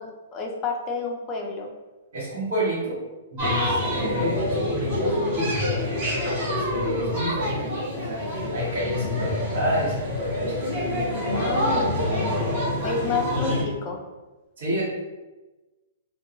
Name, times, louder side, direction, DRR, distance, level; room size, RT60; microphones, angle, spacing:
voice 1, 0.0-1.7 3.4-3.8 11.3-14.0, left 4 dB, 15° left, 1 dB, 0.3 m, -30 dB
voice 2, 2.1-3.0 3.3-3.6 3.9-5.1 5.7-8.2 8.5-10.8 14.6-14.8, equal, 65° right, -8 dB, 1.1 m, -29 dB
sound 1, 3.4-13.6, left 1 dB, 25° right, 0.8 m, -26 dB
2.8 x 2.2 x 2.4 m, 1.1 s
hypercardioid pair, 180°, 0 cm